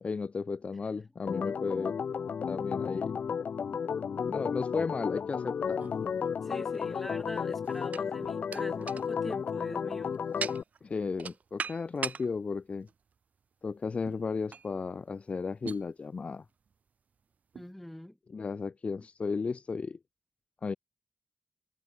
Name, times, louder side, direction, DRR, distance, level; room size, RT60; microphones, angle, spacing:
voice 1, 0.0-2.0 2.5-3.2 4.3-5.9 10.8-12.9 13.6-16.4 18.3-20.0 20.6-20.7, left 4 dB, 50° left, 1.8 m, -34 dB
Organ, 1.3-10.6, left 6 dB, 75° left, 1.6 m, -33 dB
sound 1, 5.8-6.8 7.5-12.3 12.8-12.9 14.0-14.2 14.5-14.7 15.6-15.8 16.7-16.8 17.5-17.7, right 6 dB, 70° right, 5.5 m, -40 dB
voice 2, 6.4-10.2 17.5-18.2, left 1 dB, 5° left, 6.8 m, -43 dB
cardioid pair, 80°, 3 cm